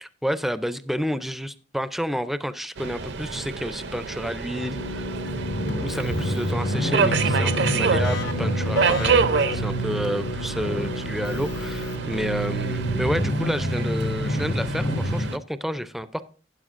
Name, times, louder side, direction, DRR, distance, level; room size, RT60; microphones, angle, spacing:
voice 1, 0.0-5.1 5.8-16.2, equal, ahead, 13 dB, 0.4 m, -30 dB
Subway metro underground, 2.8-15.4, right 5 dB, 65° right, 0.5 m, -28 dB
sound 1, 3.0-15.3, equal, 90° left, 3.7 m, -29 dB
Keyboard (musical), 4.7-13.4, right 1 dB, 65° left, 0.7 m, -32 dB
12.5 x 9.2 x 2.5 m, 0.40 s
head